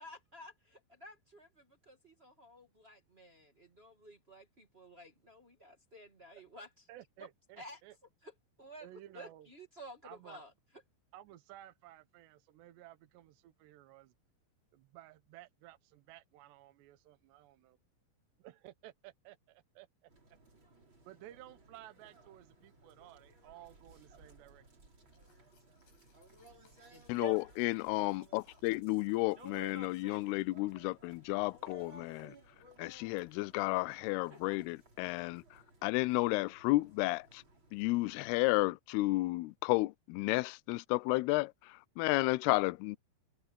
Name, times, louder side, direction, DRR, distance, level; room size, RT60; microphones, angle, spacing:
voice 1, 0.0-6.8 7.2-7.3 7.5-7.8 8.2-8.9 9.1-10.5 26.9-27.1, equal, 50° right, 0.7 m, -53 dB
voice 2, 6.9-7.9 8.8-9.5 10.0-10.4 11.1-14.1 14.7-17.8 18.4-20.4 21.1-24.7, right 14 dB, 75° right, 3.1 m, -55 dB
sound 1, 20.1-38.4, right 3 dB, 25° right, 5.2 m, -56 dB
sound 2, 25.0-29.8, left 6 dB, 70° left, 7.4 m, -71 dB
voice 3, 27.1-32.4 32.8-37.4 37.7-43.0, left 22 dB, 85° left, 2.3 m, -32 dB
omnidirectional pair, 5.1 m